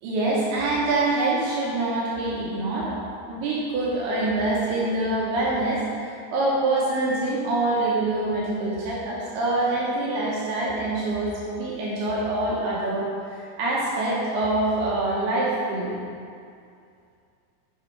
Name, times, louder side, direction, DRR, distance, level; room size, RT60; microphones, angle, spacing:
voice 1, 0.0-3.0 3.3-15.9, right 2 dB, 75° right, -6 dB, 2.9 m, -25 dB
8.0 x 5.7 x 4.6 m, 2.4 s
omnidirectional pair, 4.8 m